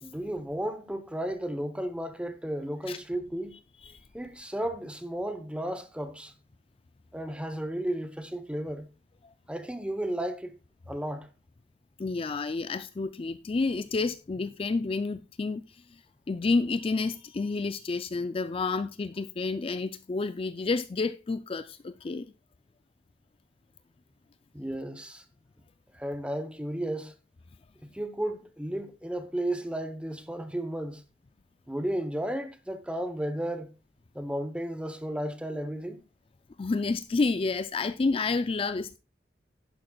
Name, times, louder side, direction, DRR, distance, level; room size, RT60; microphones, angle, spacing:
voice 1, 0.0-3.6 4.1-6.3 7.1-8.9 9.5-10.5 10.9-11.3 24.5-25.2 25.9-27.1 27.8-31.0 31.7-33.7 34.1-36.0, right 1 dB, 5° right, 0.9 m, -33 dB
voice 2, 12.0-16.0 16.3-22.3 36.6-39.0, left 3 dB, 30° left, 0.4 m, -30 dB
11.5 x 10.5 x 2.3 m
head